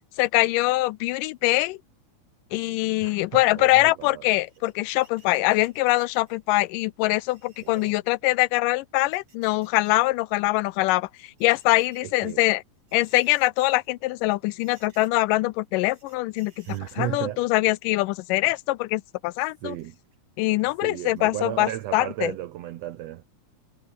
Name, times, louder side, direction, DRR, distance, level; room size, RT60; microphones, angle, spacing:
voice 1, 0.2-1.8 2.5-12.6 12.9-16.7 17.0-19.8 20.4-22.3, left 19 dB, 80° left, 2.1 m, -23 dB
voice 2, 3.0-4.2 7.6-7.9 12.0-12.4 16.7-17.4 19.6-20.0 20.8-23.2, right 14 dB, 90° right, 1.4 m, -34 dB
sound 1, 4.3-6.4 7.2-8.0 8.7-9.9 10.2-10.3 11.1-12.3 12.8-13.9 14.2-14.3 14.6-15.3 15.9-17.2 18.2-19.0 19.7-20.4 20.8-20.9 21.2-21.3, right 3 dB, 50° right, 7.9 m, -59 dB
omnidirectional pair, 4.0 m